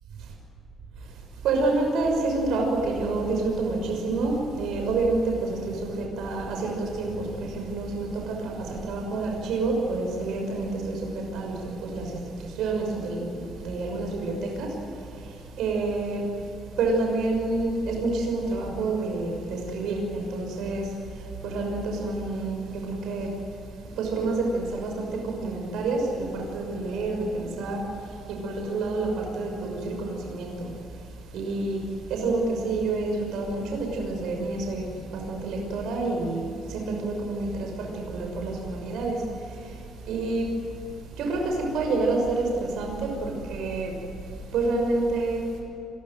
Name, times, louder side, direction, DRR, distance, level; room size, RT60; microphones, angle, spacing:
voice 1, 1.0-45.6, right 3 dB, 75° right, 1 dB, 6.2 m, -29 dB
27.5 x 23.0 x 7.8 m, 2.9 s
cardioid pair, 160°, 0 cm